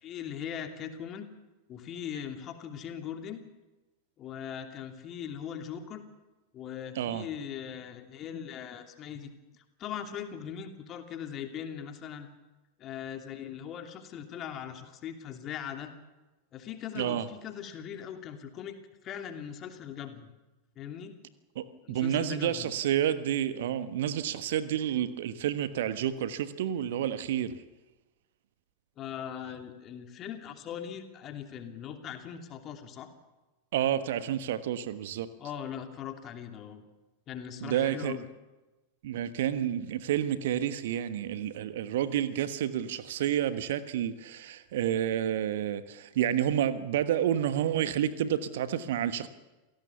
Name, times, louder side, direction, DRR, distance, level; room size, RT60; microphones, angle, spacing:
voice 1, 0.0-1.3 1.7-3.4 4.2-6.0 6.5-9.3 9.8-12.3 12.8-15.9 16.5-18.8 19.0-20.3 20.7-21.2 21.8-22.7 29.0-33.1 35.4-36.8 37.3-38.3, left 9 dB, 30° left, 6 dB, 2.8 m, -40 dB
voice 2, 17.0-17.3 21.5-27.6 33.7-35.3 37.6-38.2 39.0-49.3, right 10 dB, 55° right, 13 dB, 1.3 m, -30 dB
28.0 x 17.5 x 7.1 m, 1.1 s
figure-of-eight pair, 90°, 0 cm